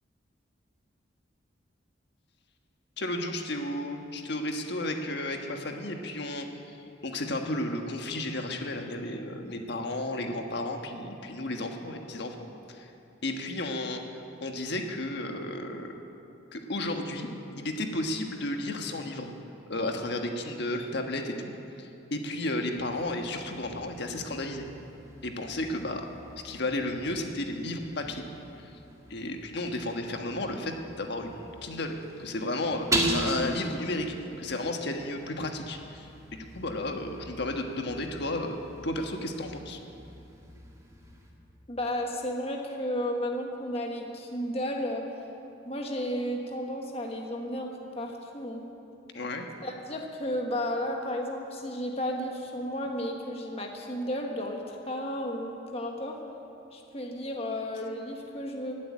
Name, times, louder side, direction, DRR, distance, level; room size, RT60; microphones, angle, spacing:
voice 1, 3.0-6.5 7.0-12.9 13.2-14.1 14.4-15.9 16.5-17.3 17.6-19.3 19.7-21.5 21.8-24.7 25.2-26.1 26.4-28.2 28.6-28.7 29.1-31.3 31.6-39.8 49.1-49.5, left 1 dB, 60° left, 4 dB, 1.4 m, -33 dB
sound 1, 22.8-41.3, right 1 dB, 15° right, 1.8 m, -39 dB
voice 2, 41.7-45.0 45.6-48.6 49.6-56.2 56.7-58.7, equal, 30° left, 1 dB, 1.4 m, -33 dB
16.0 x 8.4 x 9.9 m, 2.8 s
head